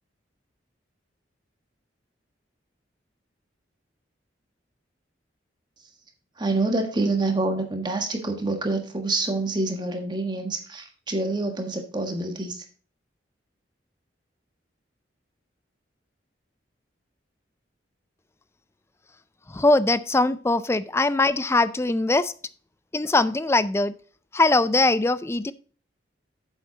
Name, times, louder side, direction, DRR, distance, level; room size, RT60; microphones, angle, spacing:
voice 1, 6.4-12.6, right 2 dB, 25° right, 4 dB, 1.4 m, -27 dB
voice 2, 19.5-22.3 22.9-23.9 24.3-25.5, left 2 dB, 15° left, 15 dB, 0.4 m, -21 dB
8.0 x 7.2 x 3.9 m, 0.40 s
head